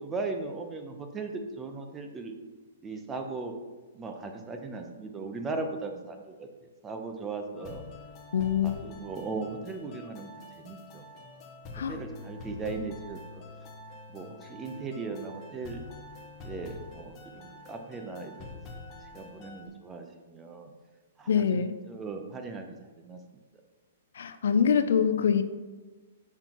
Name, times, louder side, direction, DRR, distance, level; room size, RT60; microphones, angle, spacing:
voice 1, 0.0-2.3 2.8-3.6 3.9-6.5 6.8-7.8 8.6-11.1 11.9-13.4 14.1-15.8 16.4-18.5 19.1-20.7 21.2-22.7 23.0-23.2, right 3 dB, 15° right, 4 dB, 0.7 m, -38 dB
sound 1, 7.5-19.7, left 3 dB, 30° left, 1.2 m, -46 dB
voice 2, 8.3-8.9 11.7-12.0 21.3-21.7 24.2-25.4, left 7 dB, 75° left, 10 dB, 0.5 m, -25 dB
6.8 x 5.8 x 3.0 m, 1.3 s
hypercardioid pair, 140°, 0 cm